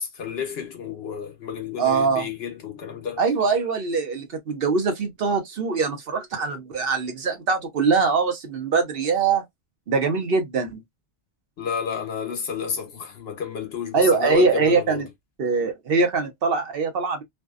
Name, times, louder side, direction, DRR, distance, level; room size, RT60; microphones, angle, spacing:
voice 1, 0.0-3.2 11.6-15.1, left 6 dB, 65° left, 1.0 m, -30 dB
voice 2, 1.8-2.3 3.2-9.4 9.9-10.8 13.9-15.0 15.4-17.2, right 4 dB, 60° right, 0.9 m, -22 dB
2.5 x 2.2 x 2.3 m
omnidirectional pair, 1.2 m